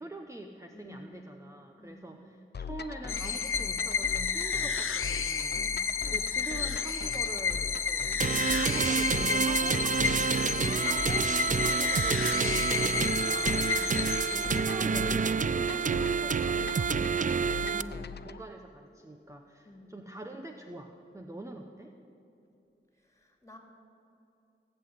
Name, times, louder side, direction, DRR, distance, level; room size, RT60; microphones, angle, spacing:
voice 1, 0.0-5.6 6.1-8.3 8.6-11.3 11.6-13.8 14.3-21.9, right 1 dB, 15° right, 4 dB, 1.0 m, -44 dB
voice 2, 0.7-1.2 1.8-2.2 5.6-6.0 13.7-14.0 17.6-17.9 19.6-20.0 23.0-23.6, left 1 dB, 15° left, 2 dB, 3.1 m, -52 dB
sound 1, 2.5-18.4, left 5 dB, 55° left, 0.6 m, -41 dB
sound 2, 3.1-15.0, left 6 dB, 85° left, 0.9 m, -31 dB
sound 3, 8.2-17.8, right 6 dB, 40° right, 0.4 m, -28 dB
18.0 x 8.0 x 9.6 m, 2.8 s
wide cardioid pair, 70°, 21 cm